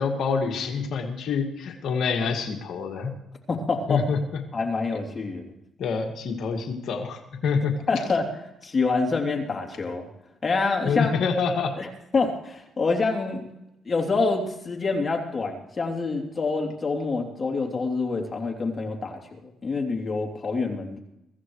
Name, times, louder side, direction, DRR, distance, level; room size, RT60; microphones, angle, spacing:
voice 1, 0.0-3.1 3.9-4.2 5.8-7.8 10.8-11.8, left 5 dB, 70° left, 2 dB, 2.1 m, -26 dB
voice 2, 3.5-4.0 4.5-5.5 7.9-8.3 8.6-10.1 10.4-11.1 11.8-13.4 13.8-21.0, left 4 dB, 35° left, 1 dB, 3.2 m, -26 dB
23.5 x 15.0 x 3.2 m, 0.86 s
cardioid pair, 90°, 0 cm